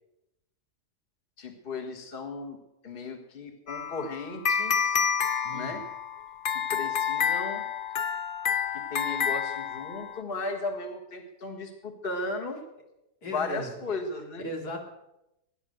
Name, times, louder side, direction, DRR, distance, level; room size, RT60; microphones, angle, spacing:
voice 1, 1.4-2.6 2.8-5.1 5.5-5.8 6.5-7.6 8.7-12.6 13.2-14.5, left 3 dB, 35° left, 3 dB, 1.8 m, -36 dB
sound 1, 3.7-10.2, left 7 dB, 55° left, 0.6 m, -29 dB
voice 2, 5.4-5.8 13.2-13.8 14.4-14.8, left 1 dB, 85° left, 2 dB, 3.0 m, -37 dB
17.0 x 10.0 x 6.5 m, 0.88 s
omnidirectional pair, 1.7 m